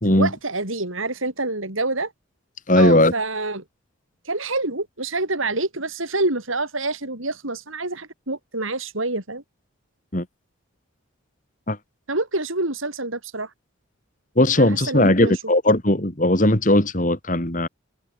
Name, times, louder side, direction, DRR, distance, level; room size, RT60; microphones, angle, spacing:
voice 1, 0.0-2.1 2.8-3.6 4.2-9.4 12.1-13.5 14.6-15.4, right 2 dB, 80° right, 7.5 m, -27 dB
voice 2, 2.7-3.1 10.1-10.2 11.7-11.8 14.4-17.7, left 1 dB, 40° left, 2.8 m, -18 dB
head